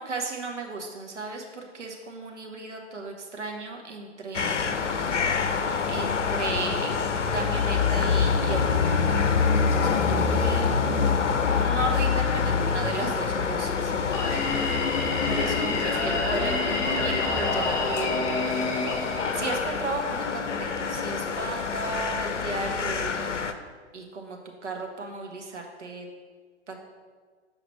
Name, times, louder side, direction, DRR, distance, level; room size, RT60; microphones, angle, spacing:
voice 1, 0.0-4.7 5.9-11.0 11.5-13.9 15.2-18.6 19.3-23.3 23.9-26.1 26.7-26.8, right 3 dB, 75° right, 2 dB, 1.1 m, -35 dB
sound 1, 4.3-23.5, left 5 dB, 85° left, 0.6 m, -26 dB
Singing, 14.1-20.1, left 3 dB, 10° left, 0.6 m, -29 dB
7.3 x 4.9 x 3.2 m, 1.5 s
figure-of-eight pair, 120°, 35 cm